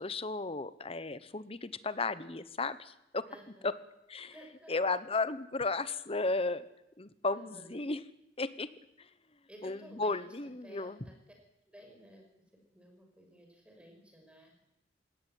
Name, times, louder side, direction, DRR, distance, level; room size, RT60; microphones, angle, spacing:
voice 1, 0.0-3.3 3.6-3.7 4.1-4.3 4.7-6.6 7.0-8.0 8.4-8.7 9.0-9.1 9.6-11.1, left 3 dB, 30° left, 15 dB, 1.1 m, -34 dB
voice 2, 3.3-3.7 4.3-4.7 7.3-7.8 9.5-11.3 11.7-12.3 12.7-14.6, right 1 dB, 5° right, 2 dB, 6.0 m, -55 dB
19.5 x 17.5 x 9.3 m, 0.85 s
head